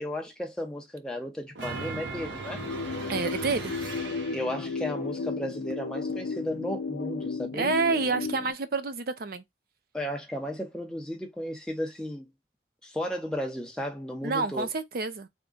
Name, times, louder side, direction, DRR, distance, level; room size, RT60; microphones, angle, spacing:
voice 1, 0.0-2.6 4.3-7.7 9.9-12.3 12.8-14.7, equal, 5° left, 0.7 m, -34 dB
sound 1, 1.5-4.7, right 3 dB, 75° right, 1.0 m, -38 dB
sound 2, 2.5-8.5, left 4 dB, 75° left, 0.5 m, -34 dB
voice 2, 3.1-3.7 7.5-9.4 14.2-15.3, right 4 dB, 50° right, 0.5 m, -28 dB
3.6 x 2.2 x 3.7 m
head